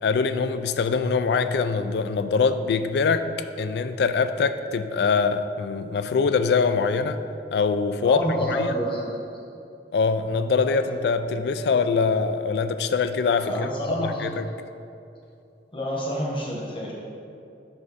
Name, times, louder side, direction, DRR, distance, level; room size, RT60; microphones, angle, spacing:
voice 1, 0.0-3.3 3.6-7.2 7.5-8.7 9.9-13.7 14.0-14.4, left 5 dB, 65° left, 10 dB, 0.3 m, -23 dB
voice 2, 8.0-9.2 10.6-10.7 13.4-14.2 15.7-16.9, equal, 30° left, -3 dB, 1.1 m, -28 dB
5.7 x 5.3 x 4.0 m, 2.6 s
head